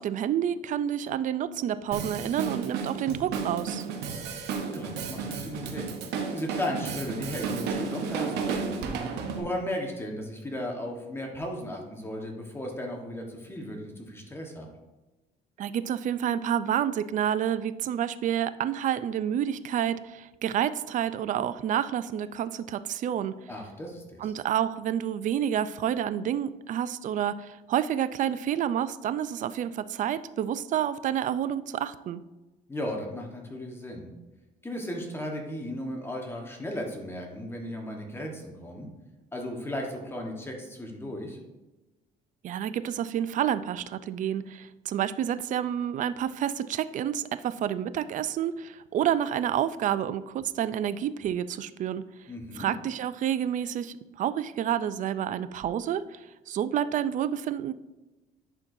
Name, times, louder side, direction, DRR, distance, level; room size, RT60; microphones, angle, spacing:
voice 1, 0.0-3.9 15.6-23.3 24.2-32.2 42.4-52.0 52.6-56.2 56.5-57.7, right 10 dB, 50° right, 14 dB, 0.4 m, -29 dB
Drum kit, 1.9-9.4, right 5 dB, 80° right, 0.9 m, -33 dB
voice 2, 4.7-6.0 6.3-8.8 9.4-14.7 23.5-24.3 32.7-34.1 34.6-38.9 39.3-41.4 52.3-52.7, left 1 dB, 15° left, 1 dB, 1.2 m, -35 dB
10.5 x 4.5 x 2.6 m, 1.1 s
cardioid pair, 110°, 17 cm